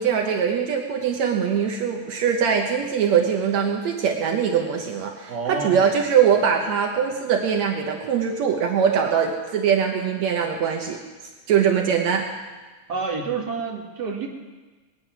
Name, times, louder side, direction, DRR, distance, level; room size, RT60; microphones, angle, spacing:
voice 1, 0.0-11.0 11.5-12.3, right 7 dB, 75° right, 2 dB, 2.2 m, -22 dB
voice 2, 5.3-5.9 12.9-14.3, right 5 dB, 40° right, -1 dB, 2.2 m, -28 dB
20.0 x 9.7 x 6.1 m, 1.3 s
omnidirectional pair, 3.3 m